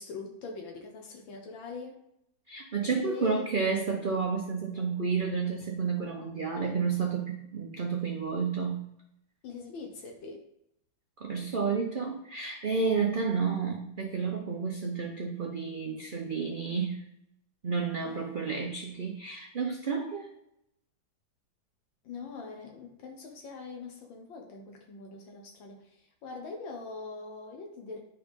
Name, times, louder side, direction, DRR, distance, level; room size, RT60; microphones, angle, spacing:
voice 1, 0.0-2.0 3.0-3.5 9.4-10.4 18.0-18.6 22.0-25.9 26.2-28.0, left 4 dB, 85° left, 2 dB, 1.8 m, -42 dB
voice 2, 2.5-8.9 11.2-17.1 17.6-20.3, right 5 dB, 60° right, 1 dB, 0.5 m, -31 dB
9.5 x 3.4 x 5.2 m, 0.77 s
omnidirectional pair, 2.1 m